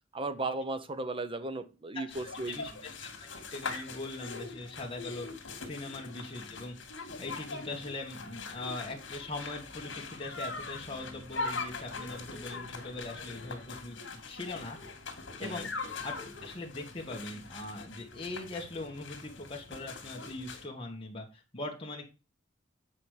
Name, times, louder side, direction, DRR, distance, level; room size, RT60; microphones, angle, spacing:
voice 1, 0.1-2.6 15.4-15.7, right 2 dB, 30° right, 11 dB, 0.9 m, -36 dB
voice 2, 1.9-3.1 3.5-6.8 7.2-14.0 14.3-14.9 15.4-15.7 16.0-22.0, left 2 dB, 30° left, 0 dB, 1.7 m, -41 dB
sound 1, 2.1-20.6, left 3 dB, 70° left, 2.3 m, -42 dB
8.5 x 5.1 x 4.9 m, 0.30 s
head